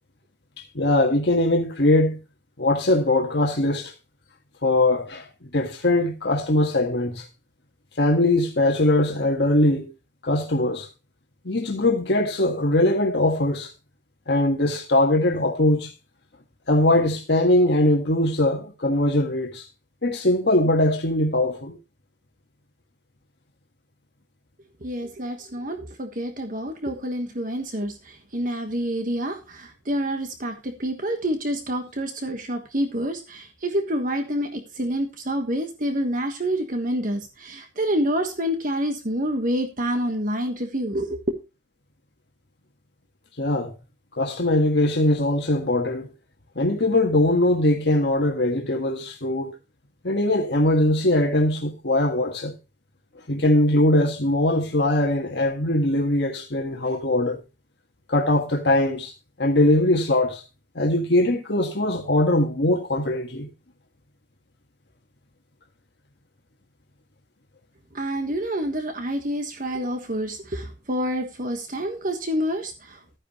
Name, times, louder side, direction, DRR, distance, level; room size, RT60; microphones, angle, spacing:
voice 1, 0.7-2.2 2.6-3.9 4.6-5.3 5.5-7.3 8.0-9.9 10.2-10.9 11.4-13.7 14.3-15.9 16.7-19.7 20.0-21.8 43.4-43.7 44.2-46.1 46.5-49.5 50.0-52.5 53.3-57.4 58.1-59.1 59.4-60.4 60.7-63.5, left 1 dB, 60° left, 1.6 m, -21 dB
voice 2, 24.8-41.4 67.9-73.2, equal, 45° right, 1.4 m, -28 dB
14.0 x 9.8 x 3.1 m
head